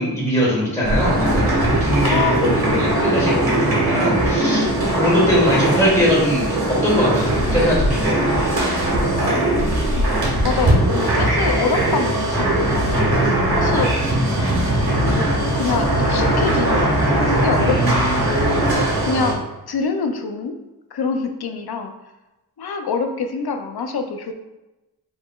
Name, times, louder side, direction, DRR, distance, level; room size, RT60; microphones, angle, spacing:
voice 1, 0.0-6.5 6.8-8.4 17.6-17.9, equal, 5° left, -6 dB, 1.4 m, -21 dB
sound 1, 0.8-19.3, right 1 dB, 70° right, 1.5 m, -19 dB
voice 2, 2.0-3.1 9.3-10.1 10.4-13.2 13.6-13.9 14.8-18.7 19.0-20.6 20.9-21.9 22.6-24.3, left 4 dB, 70° left, 5 dB, 0.5 m, -26 dB
4.7 x 4.3 x 2.3 m, 1.0 s
wide cardioid pair, 95°, 39 cm